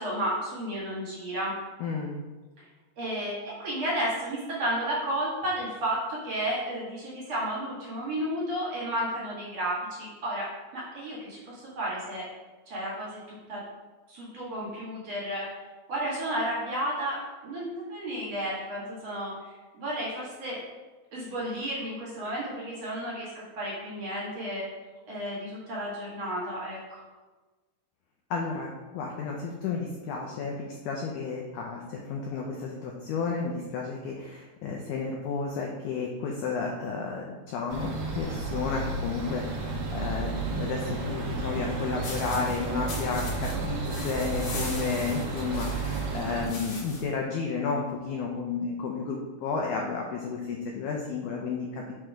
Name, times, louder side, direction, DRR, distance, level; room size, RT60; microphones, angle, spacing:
voice 1, 0.0-1.5 3.0-10.5 10.7-12.2 12.7-13.6 14.1-15.5 15.9-17.2 17.4-20.6 21.1-24.6 25.1-27.0, right 1 dB, 50° right, -7 dB, 2.8 m, -32 dB
voice 2, 1.8-2.2 28.3-51.9, left 4 dB, 80° left, 0 dB, 1.8 m, -32 dB
sound 1, 37.7-46.5, right 3 dB, 65° right, 1.8 m, -32 dB
sound 2, 42.0-47.1, left 2 dB, 55° left, 1.6 m, -41 dB
6.5 x 4.5 x 4.9 m, 1.2 s
omnidirectional pair, 4.3 m